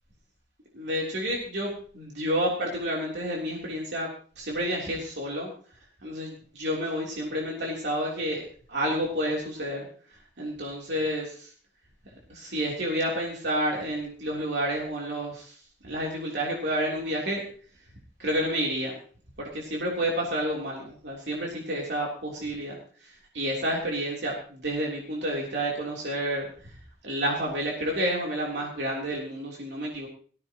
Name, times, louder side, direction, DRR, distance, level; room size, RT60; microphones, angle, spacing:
voice 1, 0.7-4.1 4.4-5.5 6.0-8.4 8.7-9.9 10.4-11.5 12.3-15.6 15.8-17.4 18.2-18.9 19.4-26.5 27.0-30.1, equal, 90° right, -2 dB, 3.4 m, -30 dB
18.5 x 15.5 x 3.0 m, 0.43 s
head